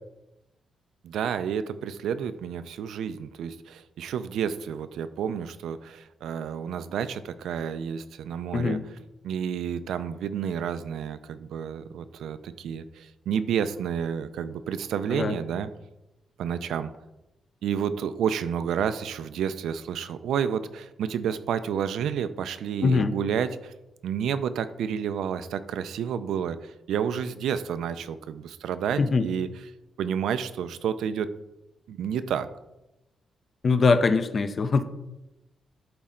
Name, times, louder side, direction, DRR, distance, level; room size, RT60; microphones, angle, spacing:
voice 1, 1.0-8.8 9.2-15.7 16.4-16.9 17.6-23.7 24.0-29.5 30.0-31.3 31.9-32.5, right 8 dB, 90° right, 12 dB, 0.5 m, -30 dB
voice 2, 8.5-8.8 15.1-15.4 22.8-23.1 29.0-29.3 33.6-34.8, left 4 dB, 35° left, 10 dB, 0.5 m, -22 dB
11.5 x 4.2 x 3.8 m, 0.94 s
wide cardioid pair, 150°, 0 cm